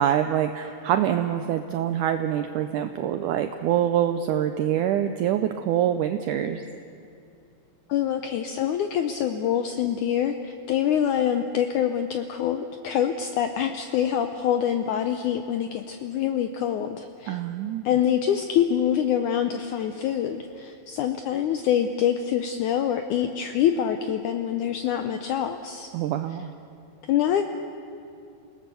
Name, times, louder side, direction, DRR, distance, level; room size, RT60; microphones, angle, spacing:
voice 1, 0.0-6.6 17.3-17.9 25.9-26.5, right 10 dB, 90° right, 8 dB, 1.8 m, -25 dB
voice 2, 7.9-17.4 17.9-25.9 27.1-27.4, left 9 dB, 90° left, 7 dB, 1.7 m, -25 dB
28.0 x 18.0 x 6.9 m, 2.5 s
omnidirectional pair, 4.4 m